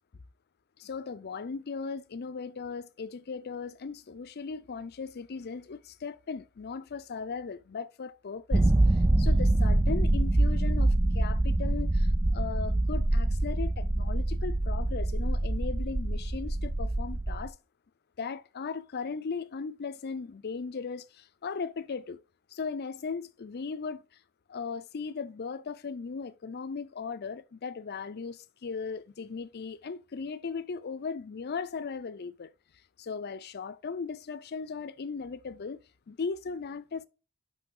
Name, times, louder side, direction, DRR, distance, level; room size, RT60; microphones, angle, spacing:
voice 1, 0.8-17.6 18.2-22.2 22.5-24.0 24.5-32.5 33.0-35.8 36.1-37.0, left 5 dB, 50° left, 0.5 m, -37 dB
sound 1, 8.5-17.5, right 1 dB, 15° right, 0.4 m, -25 dB
6.0 x 5.6 x 3.8 m
head